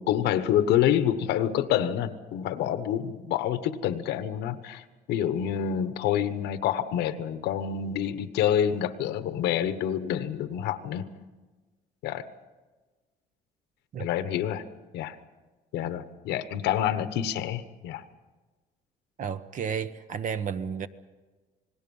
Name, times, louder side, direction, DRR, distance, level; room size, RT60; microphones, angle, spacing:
voice 1, 0.0-11.0 12.0-12.3 14.0-14.6 14.9-15.2 15.7-18.0, left 10 dB, 85° left, 1.2 m, -27 dB
voice 2, 19.2-20.9, right 7 dB, 50° right, 1.1 m, -32 dB
27.5 x 19.5 x 5.5 m
cardioid pair, 110°, 17 cm